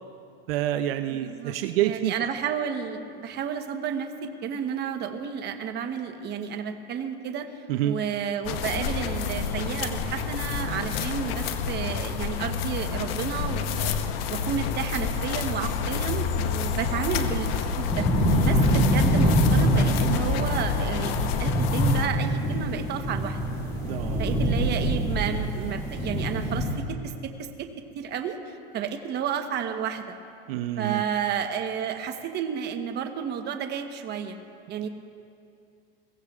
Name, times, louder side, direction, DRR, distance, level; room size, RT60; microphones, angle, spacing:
voice 1, 0.5-2.1 7.7-8.0 18.3-18.5 23.8-24.4 30.5-31.0, right 12 dB, 75° right, 8 dB, 0.7 m, -28 dB
voice 2, 1.1-1.5 1.8-7.5 7.8-13.9 14.3-23.4 24.2-27.7 27.9-30.2 30.8-34.4 34.7-34.9, right 8 dB, 35° right, 6 dB, 1.1 m, -31 dB
sound 1, 8.4-22.1, left 6 dB, 75° left, 1.0 m, -29 dB
sound 2, 16.3-26.8, equal, 15° left, 3.3 m, -25 dB
22.0 x 16.5 x 2.4 m, 2.5 s
supercardioid pair, 130°, 29 cm